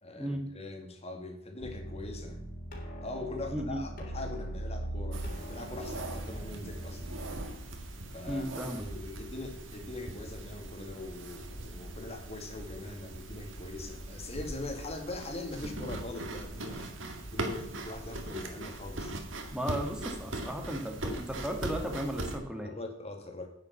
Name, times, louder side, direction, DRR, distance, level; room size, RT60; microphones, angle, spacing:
voice 1, 0.0-2.4 3.0-7.1 8.1-16.9 17.3-19.2 22.6-23.5, left 2 dB, 35° left, 3 dB, 2.4 m, -42 dB
sound 1, 1.6-7.4, right 1 dB, 50° left, 3.6 m, -40 dB
voice 2, 3.5-3.8 8.3-8.9 19.5-22.7, equal, 5° right, 3 dB, 2.0 m, -35 dB
sound 2, 5.1-22.4, right 1 dB, 80° right, 2.0 m, -40 dB
9.7 x 7.9 x 7.1 m, 0.77 s
head